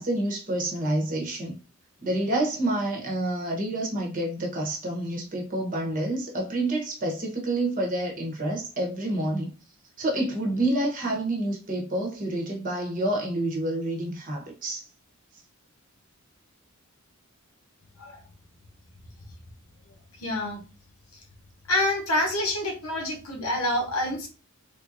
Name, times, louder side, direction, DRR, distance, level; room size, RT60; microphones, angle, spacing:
voice 1, 0.0-1.6 2.0-9.5 10.0-14.9, right 1 dB, 35° right, 0.9 m, -28 dB
voice 2, 20.2-20.6 21.7-24.3, left 1 dB, 75° left, 0.9 m, -27 dB
3.5 x 2.6 x 2.5 m
head